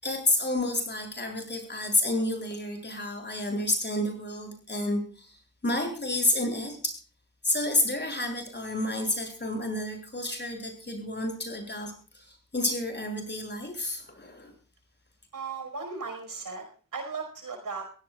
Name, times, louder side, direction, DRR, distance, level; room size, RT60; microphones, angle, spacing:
voice 1, 0.0-7.0 7.4-14.5, left 1 dB, 30° left, 3 dB, 7.4 m, -30 dB
voice 2, 15.3-16.7 16.9-17.8, right 4 dB, 80° right, 5 dB, 5.1 m, -36 dB
23.0 x 17.5 x 2.4 m, 0.39 s
wide cardioid pair, 80°, 33 cm